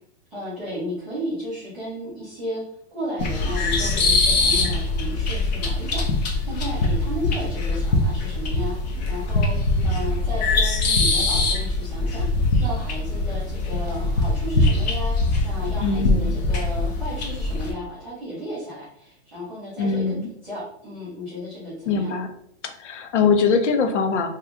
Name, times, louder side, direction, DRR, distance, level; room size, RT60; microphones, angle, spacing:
voice 1, 0.3-2.6 2.9-9.6 9.8-12.3 12.6-15.2 15.4-20.1 20.4-22.1, equal, 5° right, -13 dB, 0.3 m, -33 dB
sound 1, 3.2-17.7, left 2 dB, 40° left, 0.6 m, -22 dB
voice 2, 15.8-16.4 19.8-20.3 21.9-22.3 22.6-24.3, left 5 dB, 75° left, 6 dB, 0.7 m, -22 dB
2.9 x 2.3 x 3.5 m, 0.71 s
hypercardioid pair, 160°, 35 cm